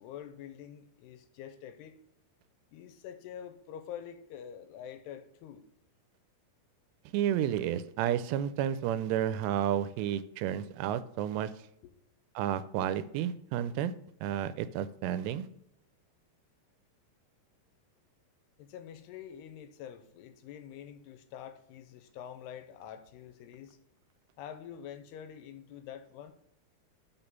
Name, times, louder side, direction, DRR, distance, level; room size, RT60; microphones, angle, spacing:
voice 1, 0.0-2.0 2.7-5.7 11.8-11.9 18.6-23.8 24.4-26.3, left 9 dB, 85° left, 2.6 m, -46 dB
voice 2, 7.1-11.5 12.4-13.9 14.2-15.5, right 10 dB, 90° right, 2.7 m, -31 dB
6.1 x 6.1 x 5.3 m
omnidirectional pair, 4.8 m